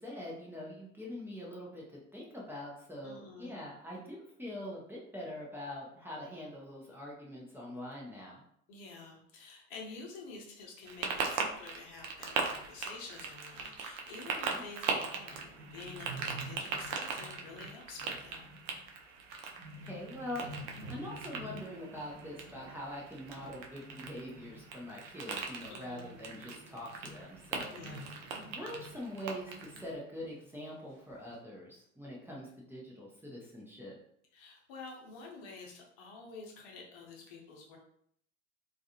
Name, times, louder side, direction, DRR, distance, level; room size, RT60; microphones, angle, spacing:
voice 1, 0.0-1.8 2.1-8.4 14.5-14.6 19.8-20.5 20.9-27.7 28.5-33.9, left 1 dB, 5° right, -5 dB, 0.7 m, -44 dB
voice 2, 3.0-3.5 8.7-18.5 25.7-26.1 27.7-28.1 34.3-37.8, left 4 dB, 55° left, 0 dB, 0.9 m, -49 dB
sound 1, 10.9-29.9, right 5 dB, 60° right, 0.6 m, -40 dB
sound 2, 14.2-14.3 14.7-14.8 14.9-25.2 25.4-29.9 30.2-30.3 30.9-31.3, right 1 dB, 90° right, 0.9 m, -50 dB
2.4 x 2.3 x 2.8 m, 0.69 s
hypercardioid pair, 80°, 41 cm